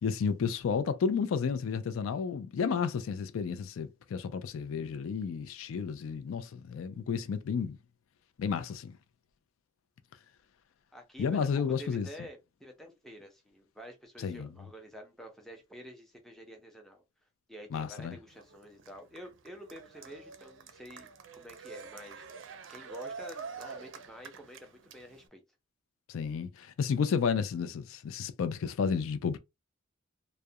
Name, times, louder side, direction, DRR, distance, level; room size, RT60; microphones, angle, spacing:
voice 1, 0.0-7.8 8.4-9.0 11.2-12.1 14.2-14.5 17.7-18.2 26.1-29.4, left 6 dB, 85° left, 0.4 m, -32 dB
voice 2, 10.9-17.0 17.5-22.3 22.7-25.4, equal, ahead, 0.5 m, -49 dB
Cheering, 18.3-25.3, right 5 dB, 65° right, 0.4 m, -46 dB
2.3 x 2.1 x 2.7 m
head